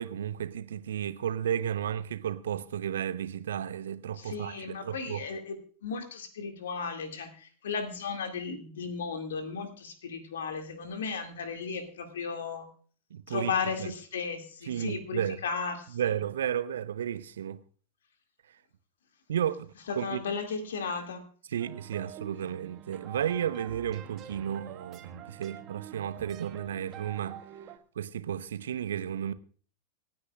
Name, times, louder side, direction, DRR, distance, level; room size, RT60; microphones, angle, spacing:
voice 1, 0.0-5.3 13.1-13.5 13.8-13.9 14.7-15.4 15.9-17.6 19.3-20.2 21.5-27.4 28.0-29.3, right 9 dB, 65° right, 0.8 m, -33 dB
voice 2, 4.2-5.6 5.8-12.7 13.3-16.0 19.9-21.3, left 5 dB, 65° left, 2.3 m, -35 dB
sound 1, 21.6-27.8, right 11 dB, 30° right, 1.5 m, -47 dB
27.5 x 9.5 x 2.4 m
figure-of-eight pair, 90°, 0 cm